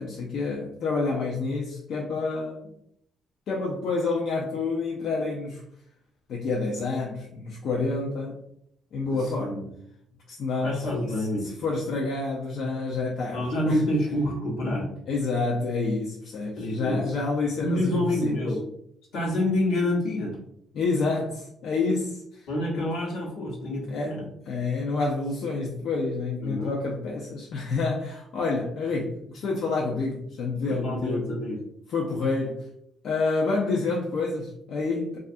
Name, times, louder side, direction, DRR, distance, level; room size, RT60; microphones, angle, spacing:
voice 1, 0.0-2.7 3.5-5.6 6.3-8.4 8.9-9.6 10.3-13.8 15.1-18.4 20.7-22.2 22.8-22.9 23.9-24.1 24.5-31.3 31.9-32.6 33.0-35.2, left 3 dB, 70° left, -2 dB, 0.4 m, -28 dB
voice 2, 9.4-9.7 10.6-11.5 13.3-14.9 16.6-17.0 17.6-18.6 19.1-20.4 22.5-24.3 26.4-26.8 30.7-31.6, left 1 dB, 90° left, -3 dB, 0.9 m, -27 dB
2.4 x 2.3 x 2.6 m, 0.71 s
cardioid pair, 90°, 0 cm